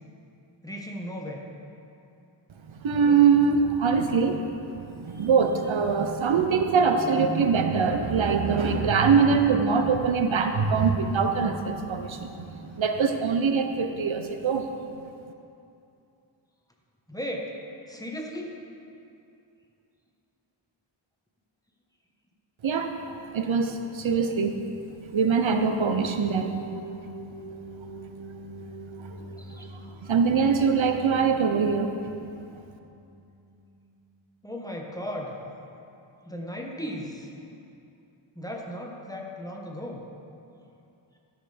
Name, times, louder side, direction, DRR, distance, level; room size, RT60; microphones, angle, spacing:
voice 1, 0.6-1.4 5.1-5.3 17.1-17.5 17.9-18.6 29.4-29.7 34.4-35.4 36.3-37.3 38.3-40.0, equal, 10° left, 0 dB, 1.2 m, -36 dB
voice 2, 2.7-4.4 4.7-14.7 22.6-22.9 23.3-24.6 25.1-26.5 29.0-29.3 29.6-32.1, right 5 dB, 75° right, 6 dB, 0.8 m, -23 dB
sound 1, 26.3-34.1, right 2 dB, 55° right, 2.8 m, -44 dB
13.0 x 6.6 x 5.0 m, 2.7 s
wide cardioid pair, 80°, 47 cm